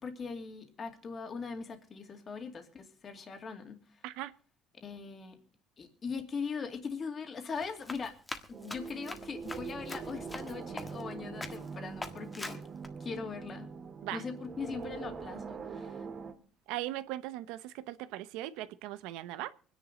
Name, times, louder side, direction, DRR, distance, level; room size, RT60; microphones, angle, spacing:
voice 1, 0.0-4.0 4.7-5.4 5.8-8.2 8.5-12.6 13.0-13.7 14.1-16.0, left 5 dB, 30° left, 2.4 m, -40 dB
Run, 7.5-11.1 11.4-11.7 12.0-12.9, left 2 dB, 15° left, 1.5 m, -43 dB
sound 1, 8.5-16.3, right 5 dB, 40° right, 2.3 m, -43 dB
voice 2, 16.7-19.5, right 15 dB, 85° right, 0.8 m, -39 dB
24.5 x 10.5 x 3.9 m
cardioid pair, 135°, 0 cm